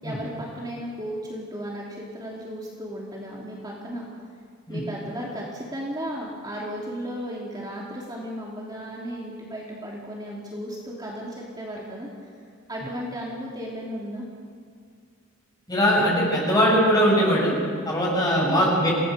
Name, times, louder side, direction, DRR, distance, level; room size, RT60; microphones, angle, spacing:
voice 1, 0.0-4.1 4.7-12.3 12.7-14.3 18.4-18.8, equal, 20° right, -4 dB, 3.0 m, -35 dB
voice 2, 15.7-17.6 17.8-18.9, equal, 20° left, -4 dB, 8.0 m, -20 dB
28.5 x 18.0 x 6.8 m, 2.2 s
head